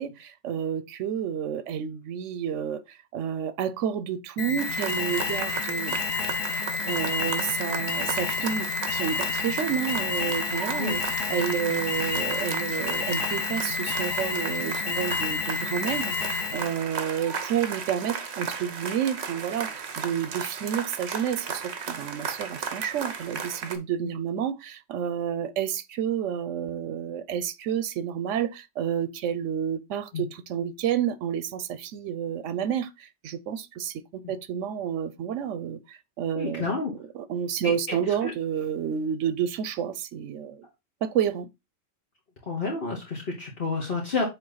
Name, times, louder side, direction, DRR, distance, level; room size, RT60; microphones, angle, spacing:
voice 1, 0.0-6.0 6.8-11.0 11.3-40.7 41.0-41.5, right 8 dB, 85° right, 1.0 m, -30 dB
Alarm, 4.4-16.8, left 5 dB, 85° left, 1.2 m, -30 dB
sound 1, 4.6-23.8, right 6 dB, 65° right, 1.2 m, -35 dB
voice 2, 36.3-36.9 38.0-38.3 42.5-44.2, left 3 dB, 50° left, 1.5 m, -29 dB
8.0 x 3.2 x 3.9 m
omnidirectional pair, 1.2 m